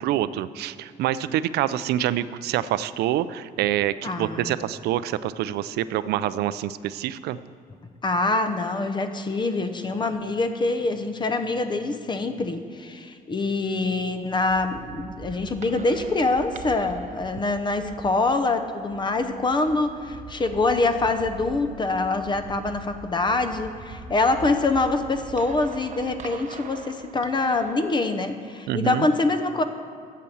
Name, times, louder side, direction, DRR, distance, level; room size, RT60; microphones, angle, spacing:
voice 1, 0.0-7.4 28.7-29.1, right 12 dB, 75° right, 15 dB, 0.4 m, -26 dB
voice 2, 4.0-4.5 8.0-29.6, left 3 dB, 25° left, 8 dB, 0.7 m, -25 dB
sound 1, 14.5-27.9, right 5 dB, 45° right, 0.8 m, -42 dB
8.4 x 7.6 x 7.1 m, 2.4 s
cardioid pair, 110°, 17 cm